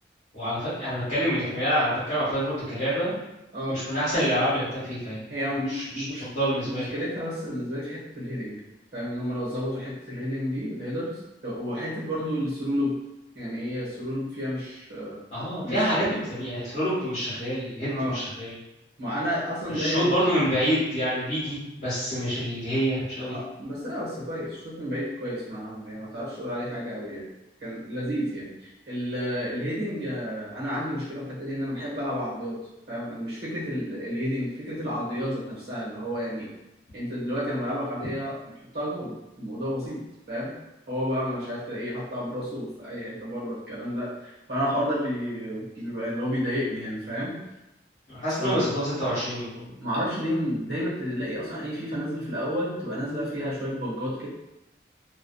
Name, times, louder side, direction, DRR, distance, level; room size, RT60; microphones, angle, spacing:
voice 1, 0.3-3.1 3.7-5.2 5.7-6.9 15.3-18.5 19.7-23.3 48.1-49.7, equal, 40° left, -13 dB, 1.1 m, -27 dB
voice 2, 5.3-6.3 6.6-8.6 8.9-13.0 13.3-15.2 15.6-15.9 17.9-18.2 19.0-20.1 23.3-27.3 27.6-32.6 32.9-36.5 36.9-38.3 38.7-40.0 40.3-40.5 40.9-47.3 48.4-48.6 49.8-54.3, equal, 60° right, -7 dB, 1.0 m, -31 dB
2.6 x 2.3 x 2.2 m, 0.92 s
head